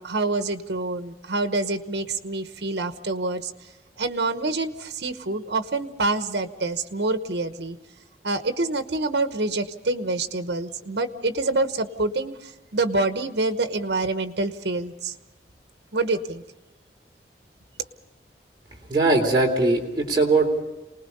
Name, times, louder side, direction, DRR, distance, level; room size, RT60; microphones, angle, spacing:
voice 1, 0.0-3.5 4.0-7.8 8.2-15.1 15.9-16.4, right 2 dB, 75° right, 9 dB, 1.1 m, -26 dB
voice 2, 18.9-20.6, right 2 dB, 25° right, -1 dB, 3.4 m, -20 dB
28.0 x 19.5 x 5.4 m, 1.0 s
head